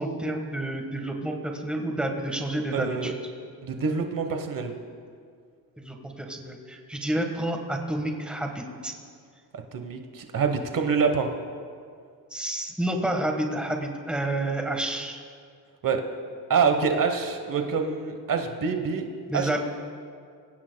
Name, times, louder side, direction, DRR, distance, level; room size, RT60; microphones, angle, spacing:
voice 1, 0.0-3.1 5.8-8.9 12.3-15.2 19.3-19.6, right 1 dB, ahead, 3 dB, 1.4 m, -29 dB
voice 2, 2.7-3.1 3.6-4.7 9.5-11.3 15.8-16.0 16.5-19.1 19.3-19.6, right 5 dB, 55° right, 5 dB, 1.2 m, -26 dB
24.0 x 16.0 x 2.3 m, 2.2 s
cardioid pair, 130°, 41 cm